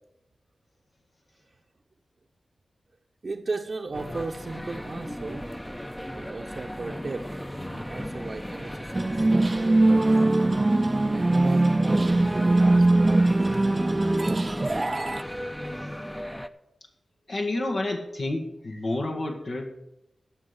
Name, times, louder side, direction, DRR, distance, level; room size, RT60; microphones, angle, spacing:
voice 1, 3.2-5.4 6.1-7.3 7.7-9.1 9.5-10.4 11.1-13.5, right 3 dB, 55° right, -1 dB, 0.9 m, -36 dB
sound 1, 3.9-16.5, equal, 5° left, 0.8 m, -35 dB
sound 2, 8.9-15.2, right 2 dB, 30° right, 0.3 m, -21 dB
voice 2, 17.3-19.7, left 2 dB, 65° left, 1 dB, 1.7 m, -29 dB
13.5 x 5.3 x 8.2 m, 0.87 s
cardioid pair, 45°, 0 cm